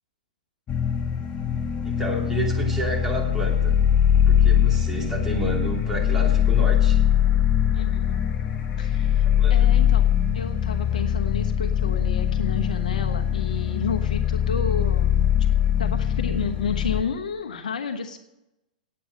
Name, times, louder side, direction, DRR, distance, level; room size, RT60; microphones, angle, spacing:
sound 1, 0.7-17.0, left 9 dB, 25° left, 1.1 m, -22 dB
voice 1, 1.8-3.8 4.3-7.0 9.2-9.7, right 1 dB, 10° right, -1 dB, 3.1 m, -30 dB
voice 2, 7.7-8.2 8.8-10.0 10.3-15.2 15.8-18.2, left 5 dB, 70° left, 5 dB, 1.1 m, -31 dB
9.0 x 8.7 x 7.7 m, 0.92 s
hypercardioid pair, 110°, 4 cm